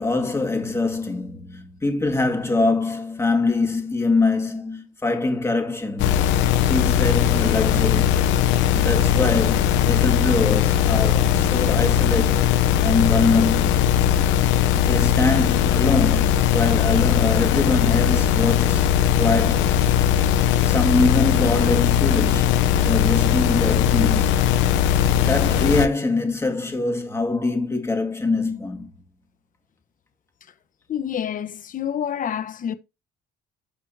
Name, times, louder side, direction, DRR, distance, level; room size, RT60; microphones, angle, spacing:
voice 1, 0.0-6.2 6.6-8.2 8.7-12.6 12.8-13.9 14.8-18.9 19.2-19.8 20.6-22.6 22.8-24.3 25.1-28.9, left 3 dB, 15° left, 2.2 m, -24 dB
sound 1, 6.0-25.9, left 10 dB, 90° left, 0.8 m, -19 dB
voice 2, 30.9-32.7, left 9 dB, 45° left, 1.1 m, -28 dB
12.5 x 4.4 x 2.8 m
cardioid pair, 105°, 19 cm